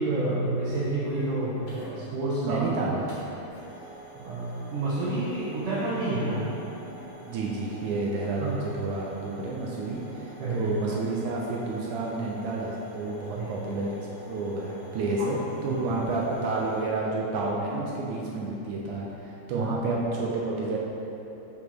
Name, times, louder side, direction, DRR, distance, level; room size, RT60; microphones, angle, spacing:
voice 1, 0.0-2.7 4.2-6.5 8.4-8.5 10.4-10.7 13.3-13.5 15.2-15.3 15.7-15.9 19.5-19.6, right 2 dB, 70° right, -8 dB, 2.3 m, -29 dB
sound 1, 0.6-16.8, right 1 dB, 50° left, 2.5 m, -47 dB
voice 2, 2.4-3.1 7.2-20.8, right 3 dB, 85° right, -3 dB, 1.7 m, -30 dB
6.3 x 5.3 x 6.0 m, 3.0 s
omnidirectional pair, 4.5 m